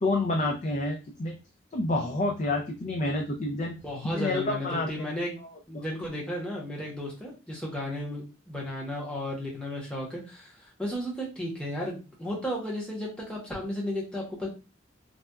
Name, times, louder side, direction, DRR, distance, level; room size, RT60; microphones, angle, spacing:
voice 1, 0.0-1.4 1.7-3.8 4.0-5.1 5.7-5.8, left 2 dB, 40° left, 2 dB, 0.3 m, -28 dB
voice 2, 3.8-5.4 5.7-14.5, left 1 dB, 5° left, -4 dB, 0.8 m, -34 dB
4.0 x 2.2 x 2.3 m, 0.31 s
head